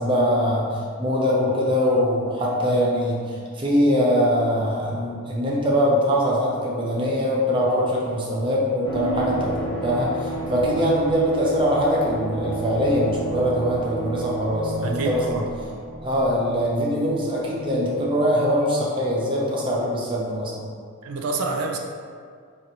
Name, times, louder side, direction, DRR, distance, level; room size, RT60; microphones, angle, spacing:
voice 1, 0.0-15.5 16.0-20.6, equal, 25° right, -4 dB, 0.5 m, -22 dB
sound 1, 8.8-17.4 17.6-17.7, right 2 dB, 20° left, 0.6 m, -32 dB
voice 2, 14.8-15.5 21.0-21.8, right 3 dB, 80° right, 1 dB, 0.4 m, -28 dB
3.0 x 2.6 x 4.1 m, 2.1 s
head